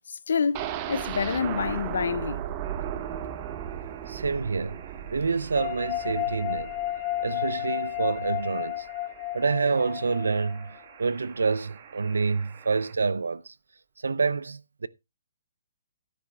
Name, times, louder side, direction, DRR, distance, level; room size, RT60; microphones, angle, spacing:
voice 1, 0.1-2.4, left 6 dB, 70° left, 0.5 m, -28 dB
sound 1, 0.5-8.4 8.8-8.9 9.2-9.3, right 10 dB, 30° right, 0.9 m, -36 dB
sound 2, 2.6-12.9, right 8 dB, 45° right, 1.6 m, -51 dB
voice 2, 4.1-4.8 5.1-6.7 7.2-8.9 9.3-13.5 14.0-14.9, right 4 dB, 80° right, 0.5 m, -27 dB
sound 3, 5.5-10.8, left 14 dB, 30° left, 0.8 m, -32 dB
13.0 x 10.5 x 2.3 m
hypercardioid pair, 140°, 0 cm